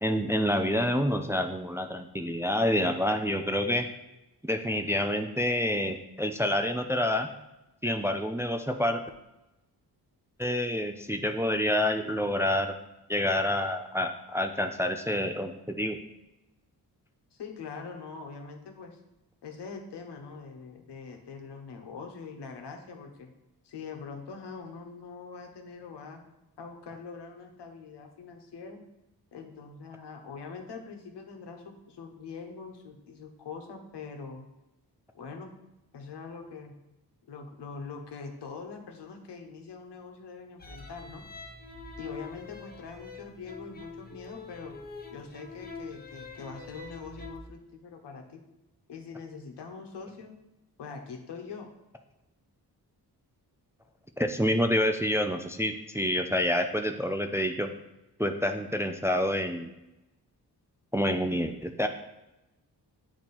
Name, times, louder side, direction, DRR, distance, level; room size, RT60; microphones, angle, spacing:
voice 1, 0.0-3.9 4.4-7.3 7.8-9.0 10.4-12.8 13.1-15.5 15.8-16.0 54.2-57.7 58.2-59.7 60.9-61.9, left 1 dB, 5° right, 6 dB, 0.4 m, -27 dB
voice 2, 17.3-19.0 19.4-23.3 23.6-26.2 26.6-28.8 29.3-34.4 35.1-35.5 35.9-36.7 37.3-41.2 42.0-44.8 45.1-48.4 48.9-50.3 50.8-51.7, left 5 dB, 85° left, 3 dB, 1.1 m, -43 dB
sound 1, 40.6-47.4, left 3 dB, 25° left, 0.8 m, -44 dB
8.5 x 3.0 x 4.2 m, 0.96 s
cardioid pair, 85°, 40 cm